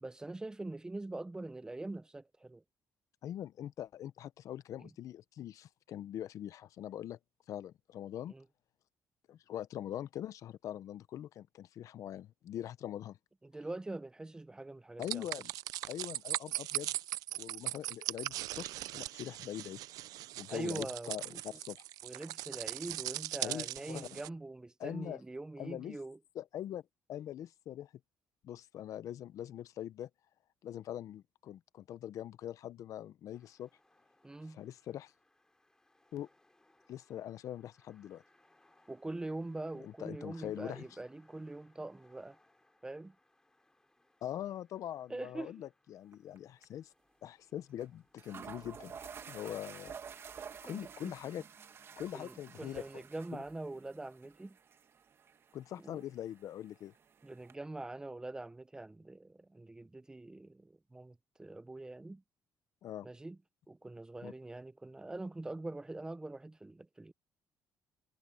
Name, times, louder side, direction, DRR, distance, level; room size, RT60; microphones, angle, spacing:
voice 1, 0.0-2.6 4.8-4.9 8.3-8.4 13.4-15.3 20.5-21.6 22.0-26.2 34.2-34.6 38.9-42.4 42.8-43.2 45.1-45.6 50.7-51.1 52.1-54.6 55.8-56.0 57.2-62.2 63.0-63.4 63.7-67.1, right 2 dB, 10° right, 0.6 m, -43 dB
voice 2, 3.2-7.2 7.5-8.3 9.3-13.2 15.0-15.5 15.9-16.9 17.3-19.8 20.4-21.8 23.4-24.2 24.8-25.2 25.6-26.0 26.3-26.8 27.1-27.9 28.4-30.1 30.6-33.7 34.5-35.1 36.1-36.3 36.9-38.2 39.8-40.9 44.2-46.9 47.2-48.9 49.3-49.9 50.6-51.4 52.0-53.0 53.3-53.4 55.5-56.9 62.8-63.1 64.2-64.3, left 11 dB, 65° left, 0.8 m, -43 dB
sound 1, 15.0-24.3, right 16 dB, 85° right, 0.5 m, -40 dB
sound 2, 33.3-48.4, left 1 dB, 10° left, 7.4 m, -71 dB
sound 3, 46.1-46.4 46.6-46.7 47.8-47.9 48.2-57.5, right 6 dB, 40° right, 1.3 m, -51 dB
cardioid pair, 115°, 6 cm